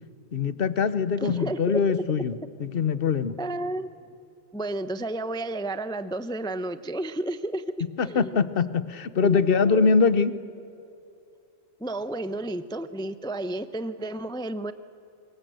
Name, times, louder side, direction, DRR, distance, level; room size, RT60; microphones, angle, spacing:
voice 1, 0.3-3.3 8.0-10.3, left 5 dB, 50° left, 15 dB, 1.0 m, -23 dB
voice 2, 1.2-1.8 3.4-3.9 4.5-7.6 8.0-8.4 9.2-9.9 11.8-14.7, right 1 dB, 5° left, 12 dB, 0.4 m, -31 dB
25.0 x 22.0 x 7.7 m, 2.6 s
omnidirectional pair, 1.4 m